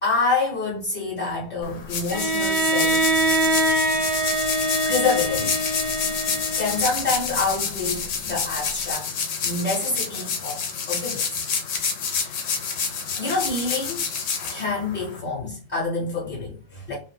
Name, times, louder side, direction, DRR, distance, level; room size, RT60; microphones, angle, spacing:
voice 1, 0.0-3.0 4.8-5.6 6.5-9.1 9.4-11.2 12.1-12.3 13.2-14.0 14.5-17.0, left 3 dB, 35° left, 0.9 m, -27 dB
sound 1, 1.6-15.2, left 5 dB, 65° left, 0.9 m, -28 dB
Bowed string instrument, 2.1-7.1, right 2 dB, 75° right, 1.1 m, -24 dB
2.7 x 2.1 x 3.3 m
omnidirectional pair, 1.6 m